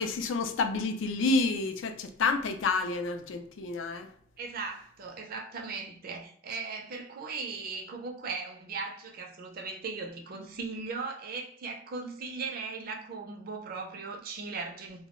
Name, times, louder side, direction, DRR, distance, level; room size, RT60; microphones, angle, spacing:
voice 1, 0.0-4.1, left 3 dB, 75° left, 0.3 m, -29 dB
voice 2, 4.4-15.1, right 4 dB, 45° right, 0.4 m, -38 dB
2.2 x 2.0 x 2.9 m
head